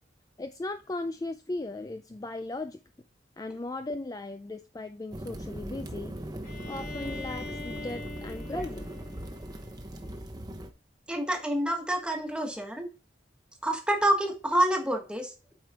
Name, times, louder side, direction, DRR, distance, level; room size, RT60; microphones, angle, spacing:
voice 1, 0.4-2.8 3.4-6.2 6.7-8.9, left 2 dB, 20° left, 0.4 m, -37 dB
sound 1, 5.1-10.7, right 1 dB, 20° right, 0.9 m, -39 dB
Bowed string instrument, 6.4-10.2, left 3 dB, 50° left, 3.8 m, -43 dB
voice 2, 11.1-12.9 13.6-15.5, right 1 dB, 5° right, 1.4 m, -28 dB
8.0 x 5.0 x 3.5 m
head